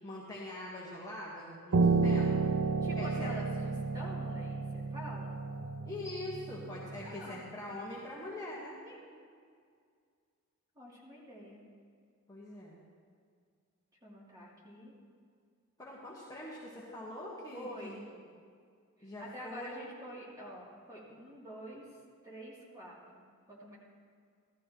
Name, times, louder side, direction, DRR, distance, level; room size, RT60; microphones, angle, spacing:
voice 1, 0.0-2.5 3.0-3.3 5.9-8.8 12.3-12.8 15.8-18.0 19.0-20.0, left 1 dB, 15° left, -6 dB, 1.4 m, -43 dB
Piano, 1.7-7.0, right 4 dB, 75° right, 0.6 m, -31 dB
voice 2, 2.8-5.3 7.0-7.5 8.8-9.1 10.7-11.6 14.0-14.9 17.5-18.3 19.0-21.9 22.2-23.8, equal, 15° right, -6 dB, 2.9 m, -47 dB
16.0 x 13.0 x 3.0 m, 2.1 s
head